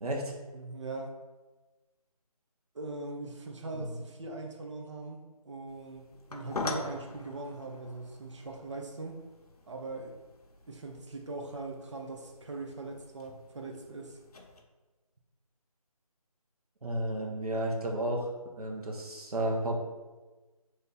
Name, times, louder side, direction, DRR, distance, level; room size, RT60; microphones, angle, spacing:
voice 1, 0.0-0.3 3.7-3.9 16.8-18.3 18.6-19.8, right 1 dB, 75° right, 0 dB, 1.0 m, -32 dB
voice 2, 0.5-1.2 2.7-9.2 9.7-10.1 10.7-14.2, right 3 dB, 50° right, 1 dB, 0.6 m, -41 dB
sound 1, 5.7-14.6, left 3 dB, 80° left, 0.7 m, -44 dB
3.3 x 2.8 x 3.9 m, 1.2 s
figure-of-eight pair, 170°, 19 cm